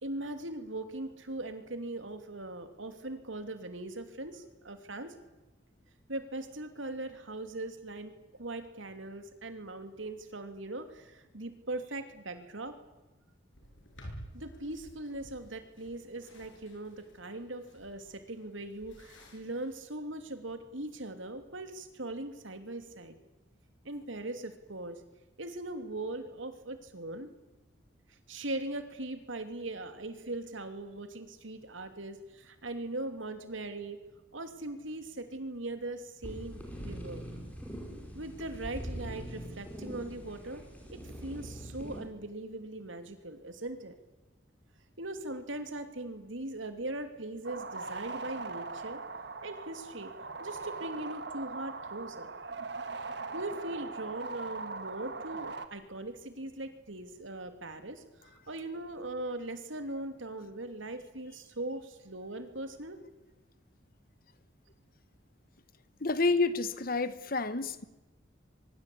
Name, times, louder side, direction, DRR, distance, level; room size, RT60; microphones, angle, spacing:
voice 1, 0.0-5.2 6.1-8.1 8.4-12.8 14.3-23.1 23.8-25.0 25.4-27.3 28.3-34.0 34.3-37.2 38.1-40.6 40.9-43.9 45.0-49.0 49.4-50.1 50.4-52.3 53.3-63.0, right 2 dB, 80° right, 8 dB, 2.9 m, -40 dB
sound 1, 13.5-19.8, equal, 80° left, 6.9 m, -52 dB
sound 2, 36.2-42.0, equal, 10° left, 5.2 m, -42 dB
sound 3, 47.4-55.7, right 3 dB, 60° right, 1.7 m, -40 dB
voice 2, 66.0-67.8, left 3 dB, 50° left, 14 dB, 1.2 m, -29 dB
24.0 x 22.5 x 8.6 m, 1.1 s
head